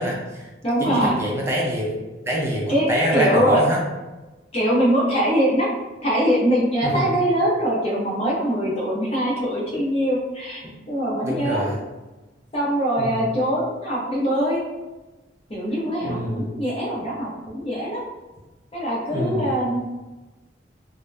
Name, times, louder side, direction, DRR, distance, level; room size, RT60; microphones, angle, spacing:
voice 1, 0.0-0.5 0.8-2.0 2.3-3.8 6.8-7.1 10.6-10.7 11.2-11.8 13.0-13.2 16.0-16.5 19.1-19.5, equal, 15° right, -3 dB, 0.4 m, -24 dB
voice 2, 0.6-1.2 2.7-3.6 4.5-5.7 6.0-10.6 10.9-11.7 12.5-14.6 15.5-18.0 18.7-19.8, equal, 30° left, -6 dB, 0.8 m, -22 dB
2.8 x 2.0 x 2.2 m, 1.1 s
head